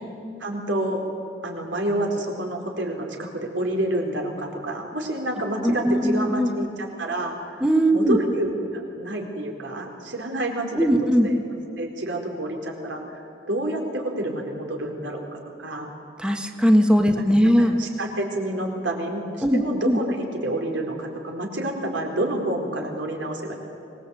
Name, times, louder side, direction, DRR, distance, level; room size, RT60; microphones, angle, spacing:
voice 1, 0.4-1.0 1.4-7.6 7.9-10.9 11.2-11.4 11.8-15.9 17.2-17.3 17.8-23.5, right 1 dB, 80° right, 2 dB, 4.3 m, -28 dB
voice 2, 5.6-6.5 7.6-8.2 10.8-11.3 16.2-17.7 19.4-20.0, equal, 5° right, 4 dB, 1.3 m, -19 dB
25.5 x 21.0 x 8.4 m, 2.6 s
head